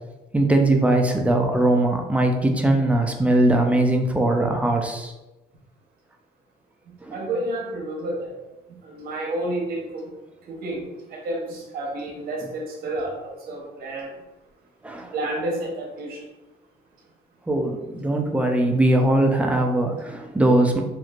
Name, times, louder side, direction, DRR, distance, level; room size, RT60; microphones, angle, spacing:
voice 1, 0.3-5.1 7.0-7.2 14.8-15.1 17.5-20.8, right 1 dB, 10° right, 2 dB, 0.4 m, -20 dB
voice 2, 7.1-8.3 8.8-10.1 10.5-14.1 15.0-16.2 18.4-18.5, right 1 dB, 65° right, -1 dB, 0.9 m, -30 dB
3.1 x 2.5 x 2.4 m, 1.0 s
cardioid pair, 110°, 17 cm